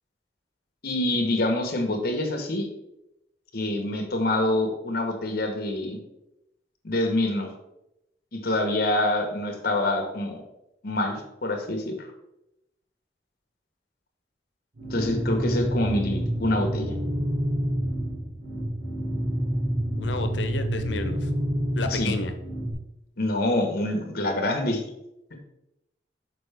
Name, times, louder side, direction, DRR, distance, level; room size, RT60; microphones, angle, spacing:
voice 1, 0.8-2.7 3.5-6.0 6.8-7.5 8.3-10.4 10.8-12.1 14.9-16.9 21.9-22.2 23.2-24.8, left 1 dB, 60° left, 4 dB, 1.1 m, -26 dB
sound 1, 14.8-22.7, right 1 dB, 70° right, 2.3 m, -28 dB
voice 2, 20.0-21.3 21.7-22.3, left 3 dB, 90° left, 7 dB, 0.7 m, -31 dB
6.0 x 4.6 x 3.4 m, 0.86 s
head